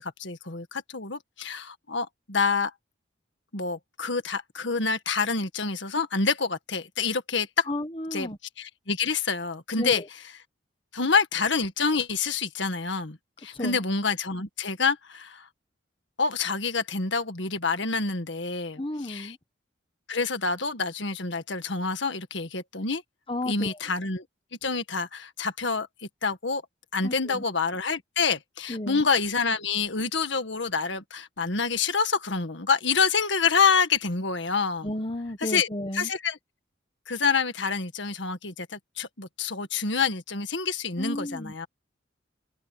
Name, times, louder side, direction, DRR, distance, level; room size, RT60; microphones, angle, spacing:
voice 1, 0.0-2.7 3.5-7.7 8.1-8.3 8.6-10.0 10.9-15.5 16.2-19.4 20.1-23.0 23.5-24.3 24.6-25.9 26.2-26.6 26.9-34.9 35.4-35.7 35.9-36.4 37.1-41.7, left 5 dB, 65° left, 1.8 m, -27 dB
voice 2, 7.7-8.4 9.8-10.1 13.5-13.8 18.8-19.4 23.3-23.8 27.0-27.4 28.7-29.1 34.8-36.1 41.0-41.7, left 1 dB, 25° left, 1.3 m, -33 dB
head